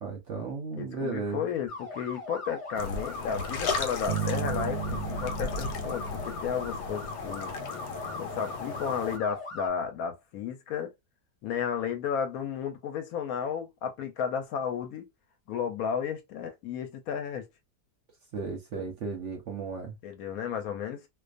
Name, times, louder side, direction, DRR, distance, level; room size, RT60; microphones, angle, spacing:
voice 1, 0.0-1.4 18.3-19.9, right 4 dB, 60° right, 0.8 m, -34 dB
voice 2, 0.8-7.5 8.2-10.9 11.4-15.1 15.5-17.5 20.0-21.1, left 7 dB, 70° left, 0.9 m, -33 dB
sound 1, 1.7-9.7, left 2 dB, 40° left, 0.4 m, -40 dB
sound 2, 2.7-9.2, left 4 dB, 90° left, 1.2 m, -36 dB
sound 3, 4.1-7.5, right 7 dB, 90° right, 1.2 m, -35 dB
2.4 x 2.3 x 2.4 m
omnidirectional pair, 1.7 m